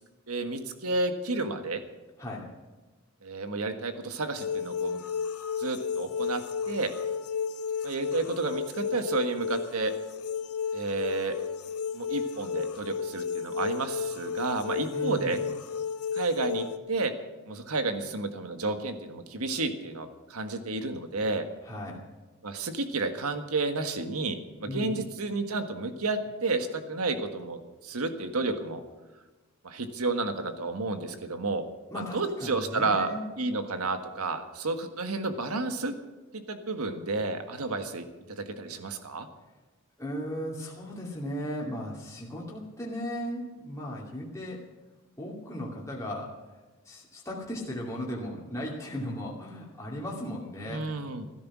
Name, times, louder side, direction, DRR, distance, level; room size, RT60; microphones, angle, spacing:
voice 1, 0.3-1.8 3.2-5.0 5.6-6.9 7.8-9.9 10.7-11.4 11.9-15.4 16.1-17.1 17.5-21.4 22.4-28.8 29.6-31.6 32.1-33.1 33.4-35.9 36.3-39.3 50.7-51.2, right 3 dB, 90° right, 8 dB, 1.5 m, -31 dB
voice 2, 2.2-2.5 14.9-15.4 21.6-22.0 24.7-25.0 31.9-33.2 40.0-44.6 45.2-46.3 46.8-50.8, equal, 15° left, -4 dB, 2.5 m, -36 dB
sound 1, 4.3-16.8, left 6 dB, 90° left, 1.0 m, -33 dB
15.0 x 13.5 x 6.1 m, 1.2 s
head